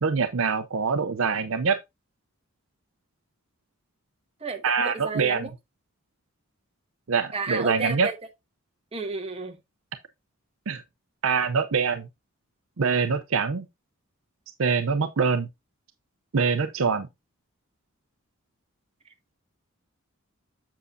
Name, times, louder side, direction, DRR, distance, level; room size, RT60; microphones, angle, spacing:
voice 1, 0.0-1.8 4.6-5.5 7.1-8.1 10.7-10.8 11.2-12.1 12.8-13.7 14.6-15.5 16.3-17.1, right 5 dB, 65° right, 0.6 m, -24 dB
voice 2, 4.4-5.5 7.3-8.2 8.9-9.6, right 3 dB, 30° right, 1.2 m, -32 dB
7.3 x 6.8 x 2.6 m
head